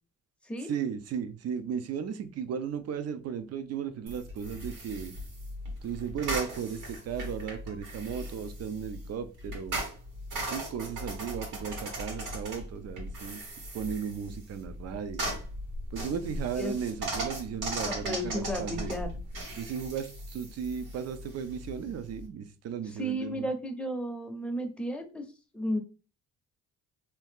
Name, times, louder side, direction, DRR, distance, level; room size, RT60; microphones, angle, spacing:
voice 1, 0.6-5.1 5.8-9.8 10.4-13.4 13.7-15.4 15.9-18.9 19.5-23.5, right 7 dB, 55° right, 0.5 m, -35 dB
sound 1, 4.1-22.3, right 1 dB, 85° right, 1.5 m, -38 dB
voice 2, 17.9-19.1 23.0-25.2 25.5-25.8, equal, 5° left, 0.7 m, -33 dB
2.9 x 2.3 x 3.5 m
cardioid pair, 90°, 30 cm